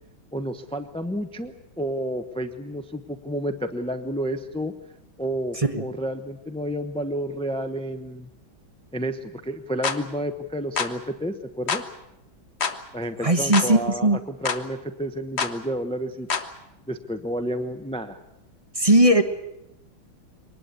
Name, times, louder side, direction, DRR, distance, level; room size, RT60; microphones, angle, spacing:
voice 1, 0.3-4.7 5.2-8.3 8.9-11.8 12.9-16.3 16.9-18.2, equal, 5° left, 9 dB, 0.4 m, -30 dB
sound 1, 9.8-10.0 10.8-10.9 11.7-11.9 12.6-12.8 13.5-13.7 14.4-14.6 15.4-15.6 16.3-16.5, left 5 dB, 40° left, 1.2 m, -26 dB
voice 2, 13.2-14.2 18.8-19.2, right 1 dB, 20° right, 8 dB, 1.0 m, -18 dB
23.0 x 19.5 x 8.4 m, 0.85 s
omnidirectional pair, 2.2 m